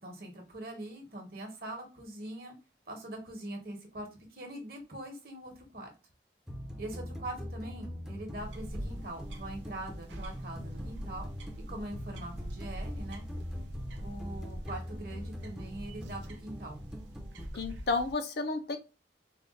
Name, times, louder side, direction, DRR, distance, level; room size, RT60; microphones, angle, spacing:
voice 1, 0.0-2.5 2.9-5.9 6.8-11.3 11.7-13.2 14.0-16.8, right 1 dB, 55° right, 2 dB, 1.0 m, -43 dB
sound 1, 6.5-17.5, equal, 5° right, 0.5 m, -43 dB
sound 2, 8.4-18.1, equal, 80° right, 0.6 m, -44 dB
voice 2, 17.5-18.8, left 3 dB, 60° left, 7 dB, 0.5 m, -31 dB
3.6 x 2.2 x 2.4 m, 0.30 s
head